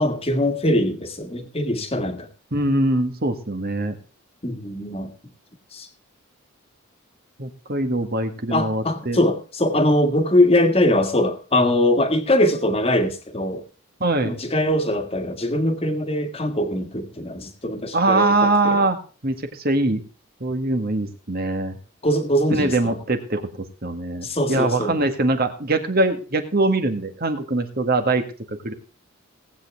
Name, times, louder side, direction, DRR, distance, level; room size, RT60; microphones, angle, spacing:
voice 1, 0.0-2.3 4.4-5.1 5.7-5.9 8.5-13.6 14.2-18.8 22.0-23.0 24.2-25.0, left 1 dB, 25° left, 6 dB, 1.8 m, -22 dB
voice 2, 2.5-3.9 7.4-9.2 14.0-14.4 17.9-20.0 20.4-21.8 22.5-28.7, right 2 dB, 45° right, 7 dB, 1.8 m, -22 dB
18.5 x 8.5 x 3.5 m, 0.37 s
head